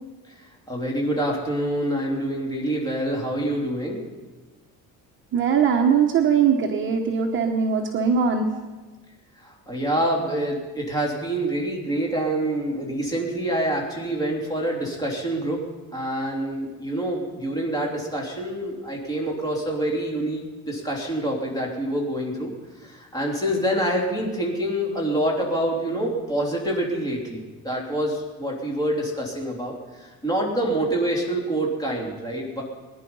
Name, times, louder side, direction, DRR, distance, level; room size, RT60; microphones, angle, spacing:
voice 1, 0.7-4.0 9.4-15.6 15.9-22.5 22.8-32.6, right 1 dB, 10° left, -2 dB, 3.2 m, -26 dB
voice 2, 5.3-8.5, right 6 dB, 35° right, 2 dB, 1.2 m, -21 dB
22.5 x 10.5 x 5.5 m, 1.3 s
cardioid pair, 165°, 34 cm